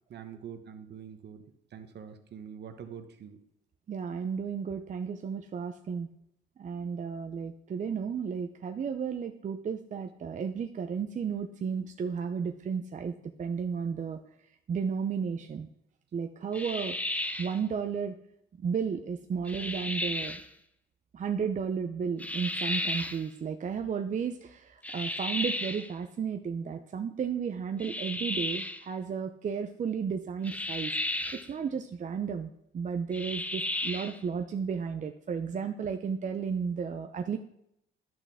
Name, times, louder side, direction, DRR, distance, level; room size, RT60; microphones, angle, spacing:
voice 1, 0.1-1.4 1.7-3.4, right 8 dB, 60° right, 8 dB, 1.0 m, -45 dB
voice 2, 3.9-6.1 6.6-13.1 13.4-14.2 14.7-15.7 16.1-16.9 17.4-18.1 18.6-20.4 21.1-30.9 31.5-37.4, right 6 dB, 40° right, 6 dB, 0.5 m, -33 dB
sound 1, 16.5-17.6 19.5-20.5 22.2-23.2 24.8-25.9 27.8-28.8 30.4-31.5 33.1-34.2, left 1 dB, 5° left, 0.6 m, -33 dB
10.5 x 6.0 x 3.5 m, 0.77 s
cardioid pair, 90°, 20 cm